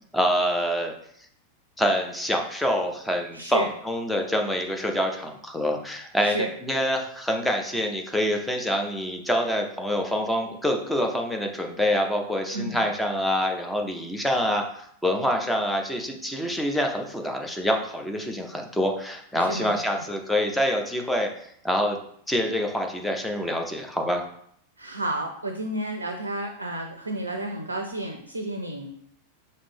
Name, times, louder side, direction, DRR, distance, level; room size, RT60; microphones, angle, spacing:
voice 1, 0.1-0.9 1.8-21.3 21.6-22.0 22.3-24.2, equal, 5° left, 3 dB, 0.6 m, -26 dB
voice 2, 3.3-3.7 6.2-6.5 12.5-12.8 19.3-19.8 24.8-28.9, right 1 dB, 80° right, 4 dB, 0.4 m, -31 dB
5.0 x 2.7 x 3.5 m, 0.68 s
figure-of-eight pair, 90°, 0 cm